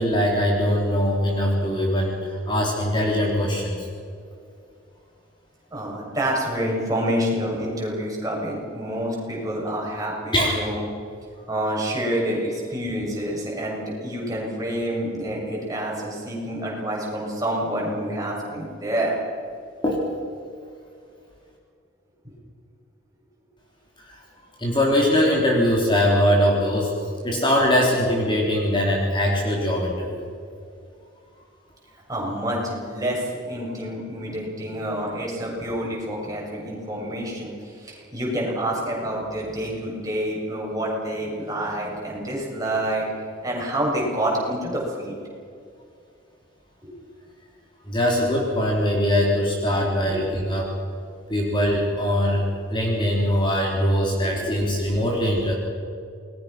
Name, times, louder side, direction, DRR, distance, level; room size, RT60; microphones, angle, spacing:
voice 1, 0.0-3.9 10.3-10.5 19.8-20.0 24.1-24.2 24.6-26.9 27.2-30.3 47.9-50.7 51.3-55.5, equal, 25° left, -2 dB, 3.8 m, -22 dB
voice 2, 5.7-10.9 11.5-19.2 32.1-43.0 43.4-45.1 46.8-46.9 54.1-54.3 54.6-54.8, right 1 dB, 20° right, -3 dB, 7.3 m, -28 dB
28.5 x 21.0 x 6.1 m, 2.4 s
head